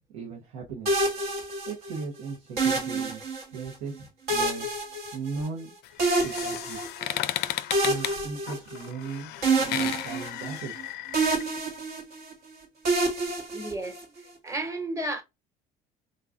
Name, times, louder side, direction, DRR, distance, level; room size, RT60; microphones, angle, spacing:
voice 1, 0.1-0.9 1.7-3.2 3.5-4.7 5.1-5.7 6.1-6.9 7.8-10.7, right 5 dB, 80° right, 1.0 m, -37 dB
sound 1, 0.9-2.0 2.6-3.7 4.3-5.6 6.0-7.2 7.7-9.1 9.4-10.8 11.1-12.3 12.9-14.2, right 3 dB, 60° right, 1.2 m, -28 dB
sound 2, 5.8-11.4, left 13 dB, 65° left, 0.4 m, -34 dB
voice 2, 13.5-14.0 14.4-15.2, right 1 dB, 15° right, 1.2 m, -32 dB
3.8 x 2.3 x 2.4 m
hypercardioid pair, 70°, 18 cm